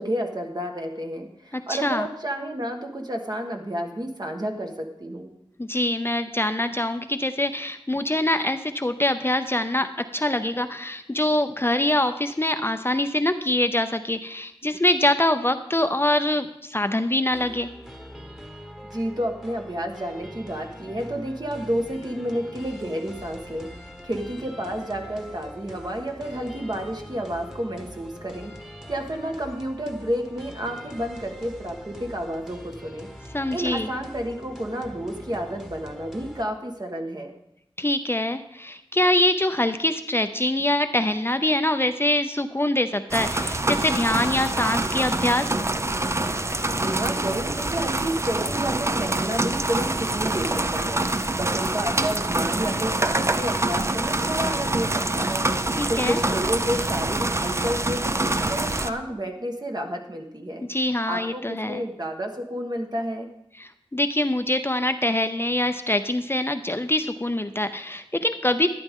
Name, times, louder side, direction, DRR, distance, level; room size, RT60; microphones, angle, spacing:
voice 1, 0.0-5.3 18.8-23.7 24.0-28.5 28.9-37.3 46.7-51.0 51.4-60.6 61.1-63.3, equal, 45° right, 3 dB, 1.5 m, -30 dB
voice 2, 1.5-2.1 5.6-17.7 33.3-33.9 37.8-45.6 55.8-56.2 60.7-61.8 63.6-68.7, left 1 dB, 25° left, 8 dB, 0.6 m, -24 dB
sound 1, 17.3-36.4, equal, 5° right, 1.3 m, -43 dB
sound 2, 43.1-58.9, right 2 dB, 30° right, 0.5 m, -25 dB
12.0 x 10.5 x 3.7 m, 0.81 s
wide cardioid pair, 55°, 10 cm